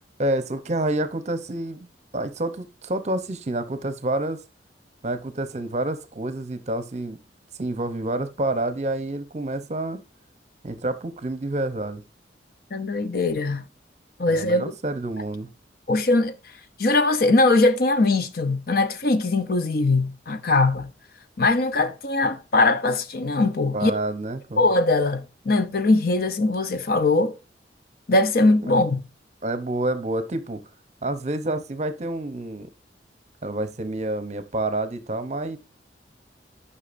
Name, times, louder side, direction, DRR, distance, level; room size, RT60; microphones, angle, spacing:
voice 1, 0.2-1.9 2.1-4.4 5.0-7.2 7.6-10.0 10.6-12.0 14.3-15.5 23.7-24.7 29.4-30.6 31.0-32.7 33.4-35.6, right 1 dB, 40° right, 0.7 m, -28 dB
voice 2, 12.7-13.6 14.2-14.7 15.9-16.4 16.8-20.9 21.4-23.9 24.6-27.4 28.1-29.0, left 2 dB, 60° left, 0.7 m, -21 dB
9.8 x 5.6 x 2.6 m
head